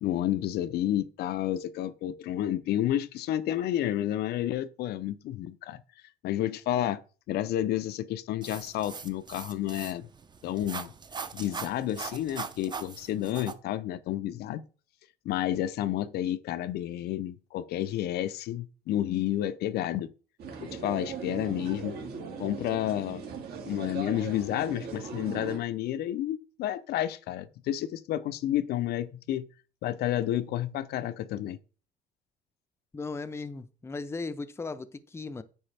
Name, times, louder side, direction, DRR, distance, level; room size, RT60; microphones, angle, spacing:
voice 1, 0.0-5.8 6.2-7.0 7.3-10.1 10.4-10.9 11.3-14.6 15.2-20.1 20.6-22.0 22.4-23.2 23.6-29.5 29.8-31.6, left 12 dB, 70° left, 0.5 m, -30 dB
sound 1, 8.4-13.5, right 5 dB, 25° right, 0.7 m, -40 dB
sound 2, 20.4-25.6, right 5 dB, 65° right, 2.1 m, -39 dB
voice 2, 32.9-35.4, left 3 dB, 15° left, 0.5 m, -37 dB
8.7 x 5.1 x 3.3 m
cardioid pair, 110°, 17 cm